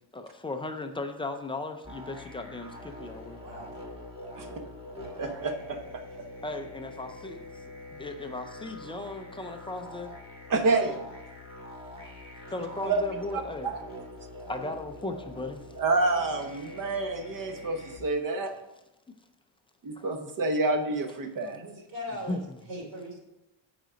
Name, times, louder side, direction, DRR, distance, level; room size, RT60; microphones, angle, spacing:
voice 1, 0.1-3.4 6.4-7.5 7.9-10.1 12.5-13.7 14.5-15.7 20.0-20.1 22.3-22.6, left 2 dB, 10° left, 6 dB, 0.3 m, -36 dB
sound 1, 1.8-18.0, left 1 dB, 10° right, 1.5 m, -44 dB
voice 2, 5.2-6.3 10.5-11.0 12.8-13.0 13.3-13.8 15.8-18.5 19.8-21.6, right 3 dB, 40° right, 6 dB, 0.9 m, -28 dB
voice 3, 21.5-22.4 22.7-23.2, left 1 dB, 60° right, -2 dB, 3.2 m, -39 dB
9.2 x 5.0 x 5.0 m, 0.96 s
cardioid pair, 175°, 50 cm